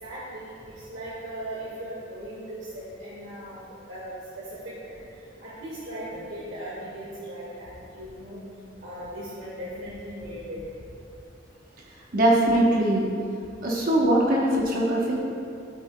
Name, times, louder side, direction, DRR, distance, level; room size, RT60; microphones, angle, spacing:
voice 1, 0.0-3.6 3.9-5.1 5.4-8.4 8.8-10.6, right 1 dB, 70° right, -8 dB, 1.8 m, -38 dB
voice 2, 12.1-13.1 13.6-15.2, right 1 dB, 50° right, -4 dB, 1.0 m, -21 dB
12.5 x 8.6 x 2.2 m, 2.6 s
head